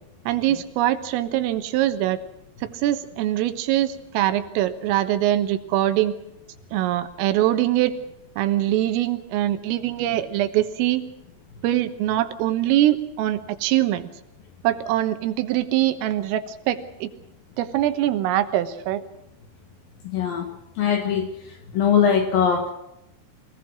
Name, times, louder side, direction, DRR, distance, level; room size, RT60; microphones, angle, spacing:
voice 1, 0.3-2.2 2.6-6.2 6.7-8.0 8.4-11.0 11.6-14.1 14.6-17.1 17.6-19.0, right 13 dB, 85° right, 10 dB, 3.9 m, -23 dB
voice 2, 20.0-20.5 20.8-21.3 21.7-22.7, left 7 dB, 60° left, 6 dB, 2.6 m, -21 dB
24.5 x 18.5 x 6.2 m, 0.87 s
omnidirectional pair, 5.8 m